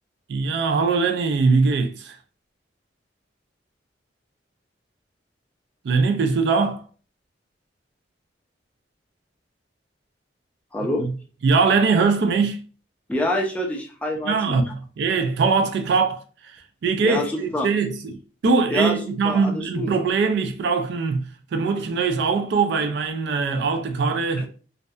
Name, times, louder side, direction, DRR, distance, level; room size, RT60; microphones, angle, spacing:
voice 1, 0.3-2.2 5.8-6.8 11.0-11.1 11.4-12.6 14.2-24.5, right 4 dB, 65° right, 0.3 m, -22 dB
voice 2, 10.7-11.1 13.1-14.6 17.0-17.7 18.7-19.0 19.2-19.9 24.4-24.5, left 1 dB, 10° left, 0.4 m, -26 dB
2.6 x 2.1 x 2.3 m
head